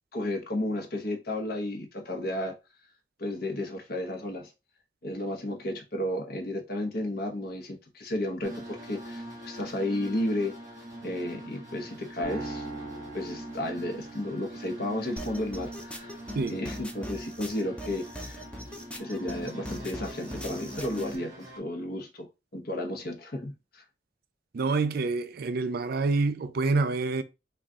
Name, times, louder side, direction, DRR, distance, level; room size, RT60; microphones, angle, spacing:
voice 1, 0.1-2.5 3.2-4.5 5.0-10.5 11.0-12.7 13.1-16.1 16.5-18.4 18.9-22.3 22.5-23.8, left 1 dB, 55° left, 0.9 m, -33 dB
sound 1, 8.4-21.6, right 1 dB, 20° right, 1.4 m, -43 dB
sound 2, 12.2-14.6, right 2 dB, 30° left, 1.5 m, -40 dB
sound 3, 15.2-21.2, left 1 dB, 5° left, 0.5 m, -40 dB
voice 2, 24.5-27.2, right 3 dB, 55° right, 0.4 m, -27 dB
3.8 x 2.4 x 3.5 m
head